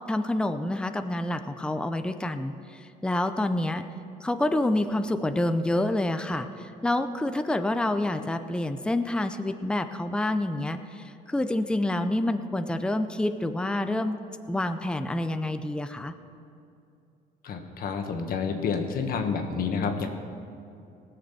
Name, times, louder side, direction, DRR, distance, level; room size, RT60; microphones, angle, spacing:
voice 1, 0.1-2.5 3.0-3.8 4.2-14.2 14.5-16.1, left 1 dB, 5° left, 9 dB, 0.6 m, -27 dB
voice 2, 17.4-20.1, left 5 dB, 60° left, 5 dB, 1.5 m, -29 dB
19.0 x 6.7 x 7.0 m, 2.6 s
cardioid pair, 110°, 17 cm